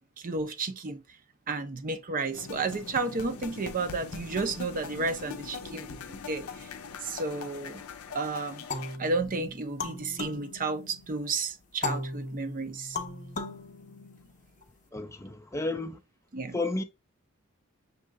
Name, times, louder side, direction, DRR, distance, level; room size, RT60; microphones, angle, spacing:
voice 1, 0.2-1.0 1.5-6.7 7.0-7.8 8.1-8.7 9.0-13.0 16.3-16.6, right 3 dB, 40° right, 0.6 m, -32 dB
sound 1, 2.3-9.0, left 5 dB, 75° left, 0.5 m, -42 dB
sound 2, 8.7-11.2 11.8-14.6, left 3 dB, 35° left, 0.8 m, -37 dB
voice 2, 14.9-16.0 16.5-16.8, left 2 dB, 15° left, 0.4 m, -32 dB
6.5 x 2.8 x 2.4 m
head